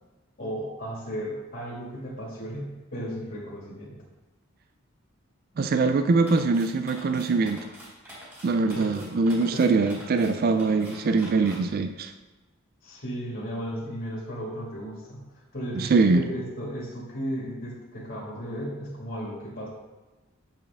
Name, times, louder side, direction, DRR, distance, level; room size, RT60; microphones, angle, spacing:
voice 1, 0.4-4.0 8.7-9.0 9.5-9.8 12.8-15.3 15.5-19.7, equal, 50° left, -5 dB, 2.0 m, -35 dB
voice 2, 5.6-7.6 8.4-12.1 15.8-16.2, right 3 dB, 45° right, 9 dB, 0.3 m, -23 dB
sound 1, 6.2-11.6, equal, 15° right, 2.5 m, -46 dB
7.6 x 6.9 x 3.5 m, 1.1 s
head